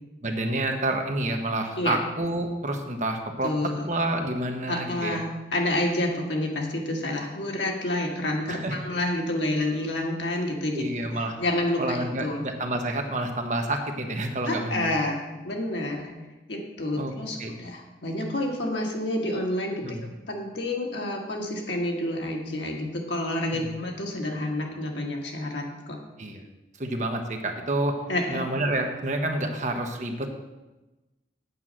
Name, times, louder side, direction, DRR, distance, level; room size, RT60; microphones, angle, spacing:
voice 1, 0.2-3.5 3.9-5.2 8.5-8.8 10.7-11.4 11.8-14.9 17.0-17.1 17.4-17.5 19.8-20.0 23.5-23.6 26.2-26.4 26.8-28.0 28.3-30.3, right 1 dB, 40° right, 4 dB, 1.0 m, -28 dB
voice 2, 3.4-3.9 4.7-10.9 11.4-12.5 14.4-16.1 16.5-26.0 28.1-28.5, left 1 dB, 80° left, 1 dB, 1.7 m, -29 dB
8.2 x 5.4 x 7.6 m, 1.1 s
head